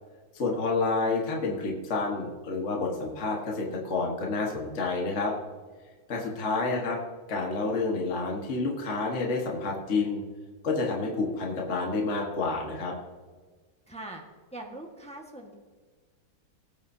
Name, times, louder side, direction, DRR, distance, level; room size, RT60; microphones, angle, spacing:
voice 1, 0.3-5.3 6.1-7.0 7.3-10.2 10.6-12.9, left 3 dB, 40° left, -1 dB, 1.6 m, -29 dB
voice 2, 13.9-14.2 14.5-15.5, right 2 dB, 5° left, 0 dB, 1.1 m, -41 dB
18.5 x 8.9 x 2.7 m, 1.4 s
omnidirectional pair, 2.2 m